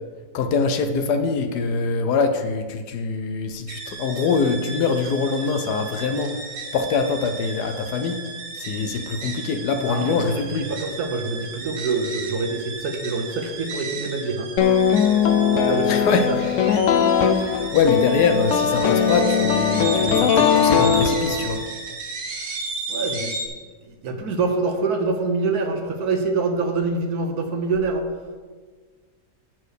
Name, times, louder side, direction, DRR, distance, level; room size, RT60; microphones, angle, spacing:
voice 1, 0.3-8.2 8.6-10.7 15.9-16.3 17.1-17.4 17.7-21.6, left 5 dB, 70° left, 7 dB, 1.2 m, -23 dB
sound 1, 3.7-23.5, right 4 dB, 80° right, 1.9 m, -34 dB
voice 2, 9.8-10.4 10.7-14.5 15.5-16.4 17.6-17.7 22.9-23.3 24.0-28.1, right 3 dB, 65° right, 5 dB, 1.3 m, -25 dB
sound 2, 14.6-21.7, left 7 dB, 90° left, 0.6 m, -20 dB
8.5 x 4.5 x 6.4 m, 1.5 s
omnidirectional pair, 1.9 m